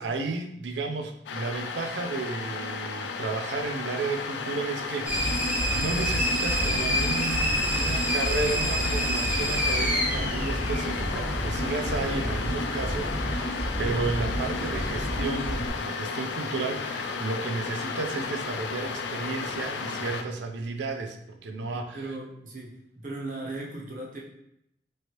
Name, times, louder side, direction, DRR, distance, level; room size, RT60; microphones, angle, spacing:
voice 1, 0.0-22.0, right 3 dB, 85° right, 4 dB, 0.4 m, -33 dB
sound 1, 1.3-20.2, left 5 dB, 80° left, 0.3 m, -34 dB
sound 2, 5.0-11.4, equal, 10° right, 0.4 m, -28 dB
sound 3, 5.1-15.7, equal, 40° left, 0.6 m, -31 dB
voice 2, 21.5-24.2, right 2 dB, 45° right, -2 dB, 0.7 m, -38 dB
3.1 x 2.6 x 2.9 m, 0.78 s
head